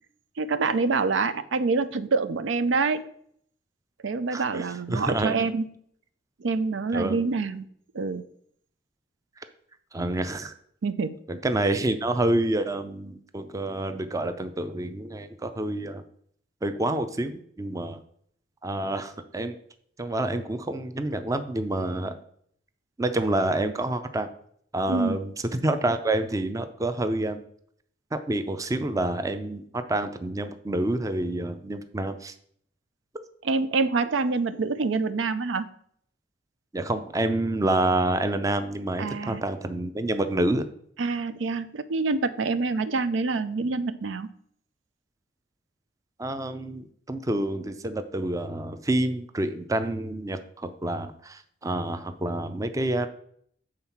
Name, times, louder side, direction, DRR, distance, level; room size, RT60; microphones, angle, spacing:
voice 1, 0.4-3.0 4.0-5.7 6.4-7.7 7.9-8.2 10.8-11.2 24.9-25.2 33.4-35.7 39.0-39.4 41.0-44.3, right 4 dB, 90° right, 12 dB, 0.5 m, -26 dB
voice 2, 4.3-5.3 6.9-7.2 9.9-10.5 11.3-16.0 16.6-18.0 18.6-19.6 20.0-22.2 23.0-24.3 24.7-27.4 28.1-32.3 36.7-40.7 46.2-53.1, right 1 dB, 20° right, 9 dB, 0.5 m, -28 dB
7.3 x 3.8 x 5.8 m, 0.64 s
head